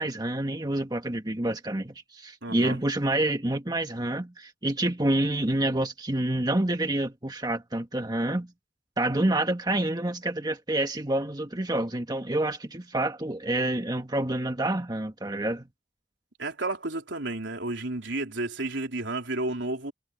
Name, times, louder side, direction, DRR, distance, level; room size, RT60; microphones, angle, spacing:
voice 1, 0.0-8.5 9.0-15.6, right 1 dB, 20° right, 1.6 m, -28 dB
voice 2, 2.4-2.8 16.4-19.9, right 2 dB, 80° right, 3.9 m, -32 dB
head